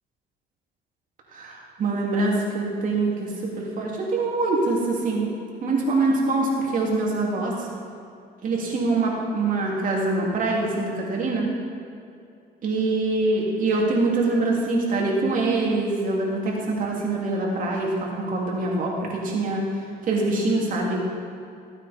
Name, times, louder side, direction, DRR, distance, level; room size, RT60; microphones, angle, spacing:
voice 1, 1.3-5.3 5.6-7.7 8.4-11.5 12.6-19.7 20.0-21.1, right 2 dB, 55° right, -2 dB, 2.9 m, -24 dB
15.5 x 9.0 x 4.4 m, 2.5 s
cardioid pair, 110°, 17 cm